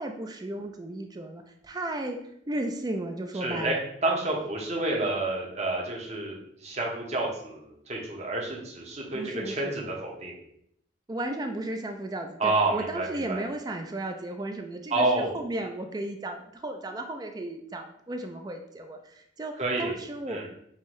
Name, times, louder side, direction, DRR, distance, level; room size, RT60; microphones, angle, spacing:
voice 1, 0.0-2.2 2.5-3.8 9.1-9.7 11.1-20.5, right 1 dB, 20° right, 4 dB, 0.4 m, -34 dB
voice 2, 3.3-3.7 4.0-10.4 12.4-13.4 14.9-15.4 19.6-19.9 20.3-20.5, right 2 dB, 40° right, -2 dB, 0.9 m, -29 dB
5.5 x 2.6 x 3.1 m, 0.71 s
head